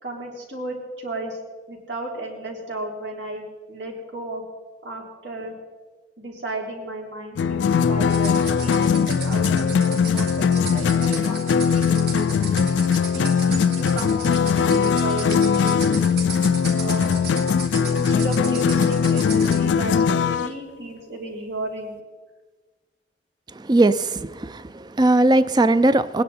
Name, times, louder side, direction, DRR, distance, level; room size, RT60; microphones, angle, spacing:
voice 1, 0.0-1.4 1.7-4.4 4.8-5.5 6.2-12.7 13.1-15.9 16.7-17.1 17.8-22.0, right 2 dB, 85° right, -2 dB, 3.5 m, -34 dB
sound 1, 7.4-20.5, left 6 dB, 90° left, 0.3 m, -20 dB
sound 2, 8.1-19.7, right 5 dB, 60° right, 3.0 m, -36 dB
voice 2, 23.5-26.2, right 2 dB, 25° right, 14 dB, 0.4 m, -19 dB
20.0 x 10.5 x 4.3 m, 1.3 s
head